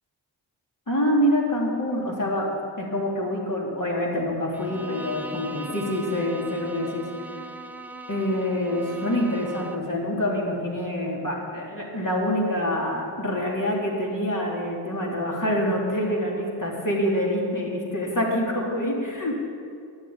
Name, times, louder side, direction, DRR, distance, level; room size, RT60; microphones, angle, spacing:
voice 1, 0.9-2.5 2.8-7.1 8.1-19.5, left 1 dB, 45° left, -3 dB, 3.4 m, -26 dB
Bowed string instrument, 4.5-10.0, right 2 dB, 5° right, 0.7 m, -39 dB
10.5 x 7.3 x 9.0 m, 2.3 s
cardioid pair, 45°, 45 cm